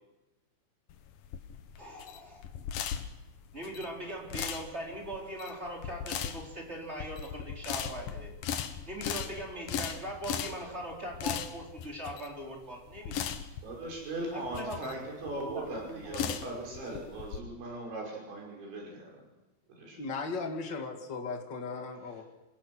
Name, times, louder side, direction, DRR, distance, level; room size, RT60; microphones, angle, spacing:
sound 1, 0.9-17.4, left 9 dB, 70° left, 2.3 m, -38 dB
voice 1, 1.8-2.5 3.5-8.3 8.9-13.4 14.3-14.9 15.2-16.2, right 1 dB, 15° right, -1 dB, 3.8 m, -40 dB
voice 2, 13.6-19.2 19.7-20.0, right 2 dB, 75° right, -1 dB, 8.1 m, -39 dB
voice 3, 20.0-22.2, left 4 dB, 45° left, 3 dB, 1.4 m, -37 dB
27.0 x 17.5 x 6.4 m, 1.0 s
omnidirectional pair, 5.3 m